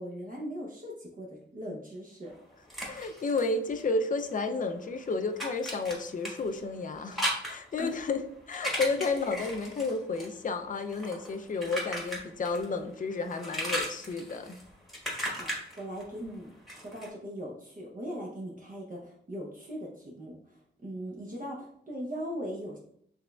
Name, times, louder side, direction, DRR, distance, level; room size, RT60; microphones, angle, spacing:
voice 1, 0.0-2.3 7.8-7.9 15.4-15.5 15.8-22.8, equal, 40° right, -2 dB, 0.8 m, -39 dB
sound 1, 2.3-4.4 4.7-12.8 13.1-17.1, equal, ahead, 1.3 m, -37 dB
voice 2, 2.9-8.2 8.5-14.6, left 3 dB, 40° left, 7 dB, 0.4 m, -32 dB
5.9 x 3.3 x 2.3 m, 0.68 s
wide cardioid pair, 135°, 21 cm